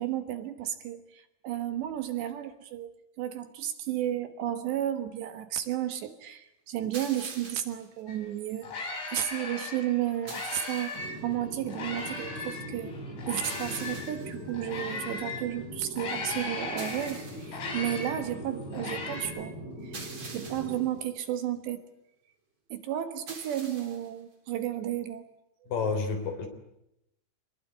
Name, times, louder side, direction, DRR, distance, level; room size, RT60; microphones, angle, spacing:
voice 1, 0.0-12.9 13.3-19.5 19.8-21.8 22.7-25.2, right 12 dB, 70° right, 9 dB, 3.3 m, -33 dB
sound 1, 6.9-7.9 10.3-11.1 13.4-14.4 16.8-17.6 19.9-20.9 23.3-24.1, right 3 dB, 25° right, 3.8 m, -44 dB
sound 2, 8.1-8.2 8.4-11.2 11.7-15.5 15.9-19.3, left 3 dB, 75° left, 8.2 m, -38 dB
sound 3, 10.9-20.8, equal, 20° left, 7.3 m, -41 dB
voice 2, 25.7-26.5, left 4 dB, 50° left, 7 dB, 4.7 m, -29 dB
26.5 x 20.5 x 9.8 m, 0.83 s
omnidirectional pair, 5.6 m